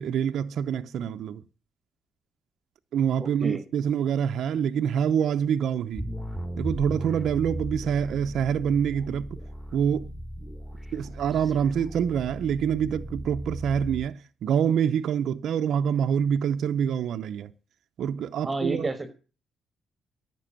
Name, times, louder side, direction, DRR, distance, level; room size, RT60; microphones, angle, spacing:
voice 1, 0.0-1.4 2.9-6.1 6.6-9.4 9.7-10.1 10.9-17.5 18.0-18.9, right 8 dB, 70° right, 0.6 m, -26 dB
voice 2, 3.2-3.6 18.4-19.1, right 2 dB, 20° right, 1.6 m, -30 dB
sound 1, 5.9-14.1, equal, 10° left, 3.3 m, -37 dB
11.0 x 7.7 x 7.4 m
cardioid pair, 90°, 0 cm